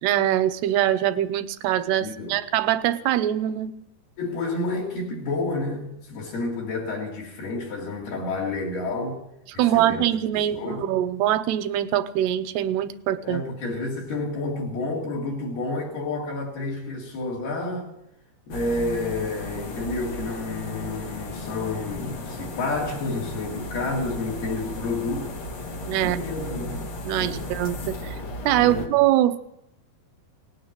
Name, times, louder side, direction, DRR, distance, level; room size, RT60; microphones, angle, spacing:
voice 1, 0.0-3.7 9.6-13.4 25.9-26.2 27.0-28.0 28.5-29.4, right 12 dB, 85° right, 12 dB, 2.7 m, -23 dB
voice 2, 2.0-2.4 4.2-9.2 9.5-10.0 10.3-10.8 13.2-17.9 18.5-25.3 26.0-26.8 27.2-27.4 28.6-28.9, left 2 dB, 65° left, -3 dB, 4.4 m, -30 dB
sound 1, 18.5-28.9, left 2 dB, 90° left, 1.1 m, -35 dB
18.0 x 9.5 x 7.3 m, 0.83 s
omnidirectional pair, 4.8 m